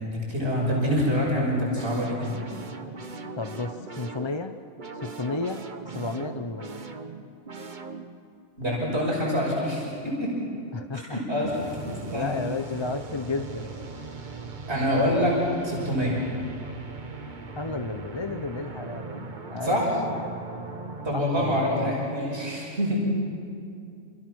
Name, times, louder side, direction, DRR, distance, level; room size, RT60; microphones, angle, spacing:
voice 1, 0.1-2.3 8.6-10.4 10.9-12.4 14.7-15.3 15.6-16.2 19.6-19.9 21.0-23.0, equal, 50° right, -3 dB, 6.5 m, -26 dB
sound 1, 1.7-8.3 11.4-21.2, right 3 dB, 35° right, 1.3 m, -39 dB
voice 2, 3.4-4.5 5.0-5.6 5.9-6.8 10.7-11.2 12.1-13.7 17.5-19.8 21.1-21.9, left 3 dB, 25° left, 7 dB, 0.7 m, -32 dB
28.5 x 27.5 x 6.3 m, 2.4 s
omnidirectional pair, 1.4 m